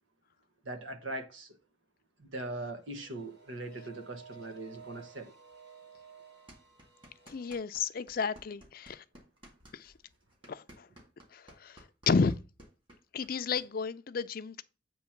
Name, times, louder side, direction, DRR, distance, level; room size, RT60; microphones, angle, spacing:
voice 1, 0.6-1.6 2.2-5.3, right 2 dB, 90° right, 1.2 m, -40 dB
sound 1, 2.8-7.6, right 6 dB, 55° right, 2.6 m, -54 dB
sound 2, 6.5-7.8 8.1-13.7, equal, 25° right, 2.0 m, -55 dB
voice 2, 7.3-9.0 9.7-9.9 10.5-10.9 11.3-12.4 13.1-14.6, left 5 dB, 50° left, 0.4 m, -32 dB
8.0 x 3.1 x 5.8 m
head